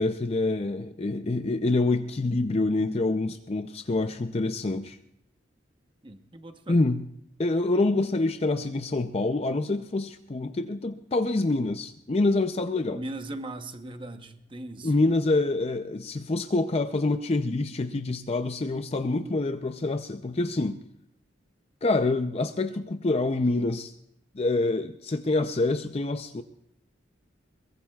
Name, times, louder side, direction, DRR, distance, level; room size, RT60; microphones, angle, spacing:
voice 1, 0.0-5.0 6.7-7.0 7.4-13.0 14.8-20.8 21.8-23.9 24.3-26.4, left 2 dB, 35° left, 8 dB, 0.5 m, -26 dB
voice 2, 6.0-6.8 12.9-15.0, right 2 dB, 25° right, 6 dB, 0.9 m, -39 dB
22.0 x 22.0 x 2.4 m, 0.79 s
head